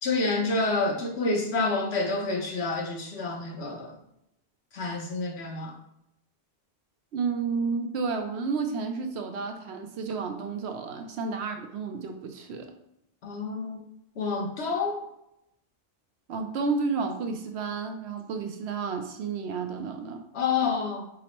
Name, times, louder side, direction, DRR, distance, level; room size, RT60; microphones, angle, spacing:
voice 1, 0.0-3.9 4.7-5.7 13.2-13.8 14.2-15.0 20.3-21.1, left 3 dB, 70° left, 1 dB, 1.1 m, -28 dB
voice 2, 7.1-12.7 16.3-20.2, right 4 dB, 70° right, 5 dB, 0.8 m, -31 dB
5.1 x 2.0 x 4.3 m, 0.80 s
omnidirectional pair, 1.2 m